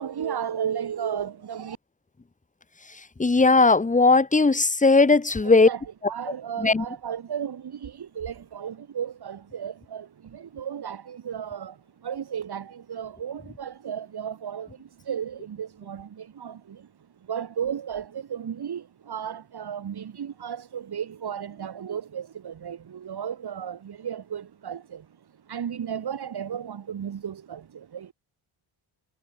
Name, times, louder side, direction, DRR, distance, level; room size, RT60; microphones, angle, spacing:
voice 1, 0.0-1.8 5.6-28.1, right 8 dB, 50° right, 5.4 m, -34 dB
voice 2, 3.2-5.7 6.6-6.8, left 3 dB, 15° left, 2.2 m, -18 dB
wide cardioid pair, 175°, 50 cm